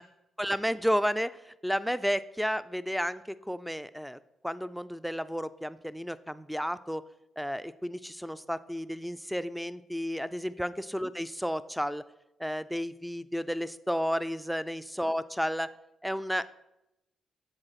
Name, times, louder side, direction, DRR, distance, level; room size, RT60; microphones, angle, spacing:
voice 1, 0.4-7.0 7.4-12.0 12.4-15.7 16.0-16.5, equal, ahead, 15 dB, 0.4 m, -32 dB
8.0 x 3.8 x 5.7 m, 0.88 s
cardioid pair, 85°, 0 cm